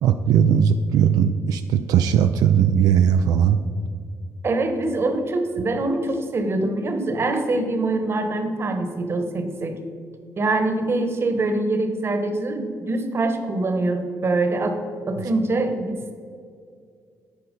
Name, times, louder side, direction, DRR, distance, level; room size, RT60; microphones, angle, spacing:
voice 1, 0.0-3.6, right 8 dB, 90° right, 8 dB, 0.4 m, -18 dB
voice 2, 4.4-9.8 10.4-16.1, right 2 dB, 40° right, 6 dB, 1.1 m, -24 dB
9.8 x 4.6 x 5.3 m, 2.2 s
cardioid pair, 95°, 6 cm